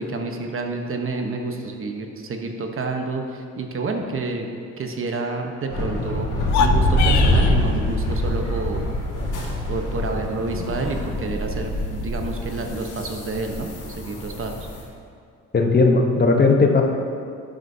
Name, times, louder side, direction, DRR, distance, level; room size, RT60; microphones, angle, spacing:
voice 1, 0.0-4.4 4.8-8.9 9.7-14.7, right 3 dB, 45° right, 3 dB, 1.0 m, -29 dB
sound 1, 5.7-14.8, left 1 dB, 90° left, 2.3 m, -24 dB
sound 2, 6.4-7.6, left 6 dB, 65° left, 0.6 m, -23 dB
voice 2, 15.5-16.8, left 3 dB, 35° left, 2 dB, 1.0 m, -16 dB
11.5 x 7.8 x 2.8 m, 2.3 s
cardioid pair, 90°, 30 cm